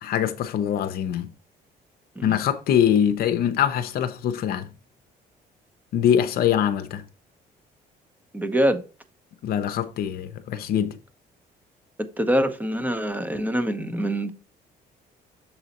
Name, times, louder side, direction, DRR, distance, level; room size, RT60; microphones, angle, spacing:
voice 1, 0.0-1.3 2.2-4.7 5.9-7.0 9.4-11.0, left 9 dB, 65° left, 0.7 m, -23 dB
voice 2, 8.3-8.8 12.2-14.3, equal, 10° right, 0.9 m, -24 dB
7.1 x 4.0 x 4.1 m
cardioid pair, 110°, 17 cm